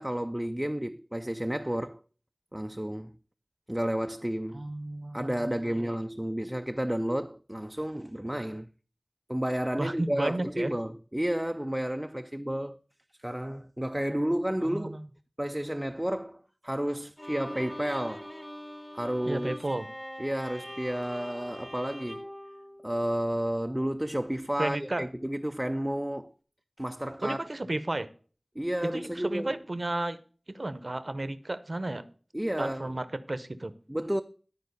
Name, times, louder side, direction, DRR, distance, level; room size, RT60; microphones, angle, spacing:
voice 1, 0.0-2.0 2.5-3.1 3.7-4.6 5.1-8.7 9.3-12.8 13.2-15.0 15.4-18.3 18.9-19.6 20.2-22.3 22.8-26.3 26.8-27.4 28.6-29.6 32.3-32.9 33.9-34.2, equal, 15° right, 0.4 m, -31 dB
voice 2, 4.5-5.9 9.8-10.7 14.6-15.0 19.2-19.9 24.6-25.1 27.2-28.1 28.8-30.2 30.5-32.0 32.6-33.7, right 2 dB, 65° right, 0.7 m, -33 dB
Bowed string instrument, 17.2-23.4, equal, 20° left, 1.1 m, -43 dB
12.0 x 4.5 x 6.6 m
wide cardioid pair, 45°, 0 cm